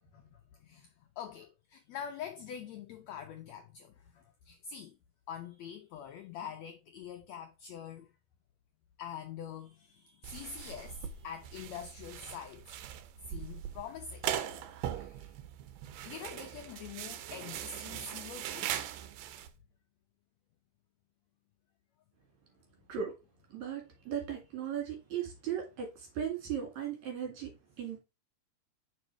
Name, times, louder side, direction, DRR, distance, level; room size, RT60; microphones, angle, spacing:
voice 1, 0.0-5.0 5.3-8.1 9.0-12.6 13.3-14.3 14.9-15.3 16.0-18.8, left 8 dB, 90° left, 1.5 m, -45 dB
sound 1, 10.2-19.5, right 10 dB, 80° right, 2.3 m, -40 dB
voice 2, 23.5-27.5 27.8-28.0, right 8 dB, 55° right, 3.6 m, -37 dB
5.3 x 4.9 x 4.5 m
omnidirectional pair, 4.0 m